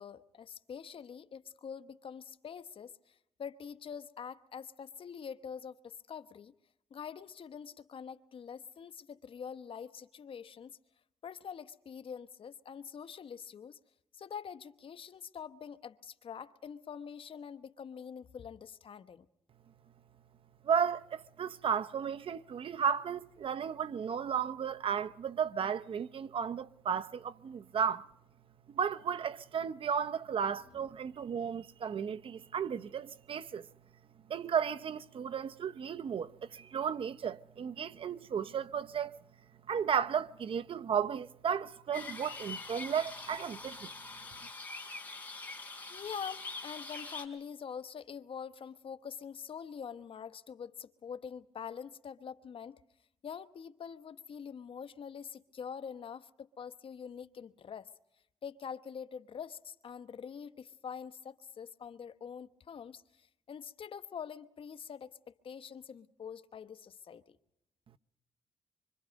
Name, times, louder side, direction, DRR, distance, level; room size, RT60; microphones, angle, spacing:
voice 1, 0.0-6.5 6.9-10.8 11.2-13.8 14.1-19.3 45.9-52.8 53.2-57.9 58.4-67.4, left 7 dB, 60° left, 1.1 m, -45 dB
voice 2, 20.6-28.1 28.7-33.7 34.3-39.1 39.7-43.9, right 7 dB, 65° right, 0.8 m, -34 dB
sound 1, 41.9-47.3, left 3 dB, 15° left, 4.7 m, -44 dB
25.5 x 25.0 x 5.2 m
cardioid pair, 80°, 10 cm